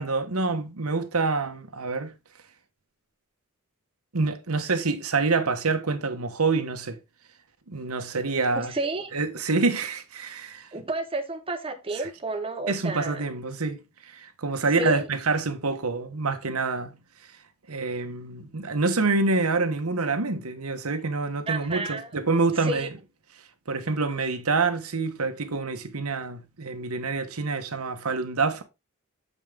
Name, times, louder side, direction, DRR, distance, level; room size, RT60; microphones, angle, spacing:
voice 1, 0.0-2.1 4.1-7.0 7.7-8.7 9.1-10.7 12.7-16.9 17.7-22.9 23.7-28.6, right 3 dB, 85° right, 1.2 m, -27 dB
voice 2, 8.5-9.1 10.7-13.2 14.8-15.1 21.5-22.1 22.5-22.9, right 2 dB, 25° right, 0.9 m, -31 dB
7.2 x 5.4 x 3.6 m
head